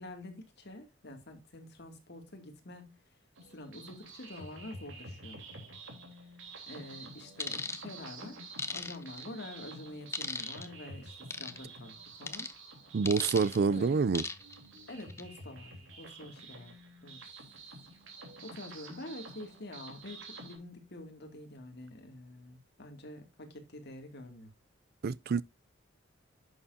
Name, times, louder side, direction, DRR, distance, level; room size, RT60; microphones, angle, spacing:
voice 1, 0.0-3.0 3.5-5.4 6.2-6.4 6.7-12.5 13.7-14.0 14.9-16.7 17.0-17.2 18.4-24.5, left 1 dB, 55° left, 2.5 m, -47 dB
sound 1, 3.4-20.6, right 2 dB, 80° right, 3.5 m, -49 dB
sound 2, 7.4-7.8 8.6-9.2 10.1-10.7 11.3-11.6 12.3-12.5 13.1-13.6 14.1-14.5 15.0-15.2, left 3 dB, 15° left, 0.9 m, -37 dB
voice 2, 12.9-14.2 25.0-25.4, right 5 dB, 50° right, 0.4 m, -27 dB
11.0 x 7.0 x 2.7 m
head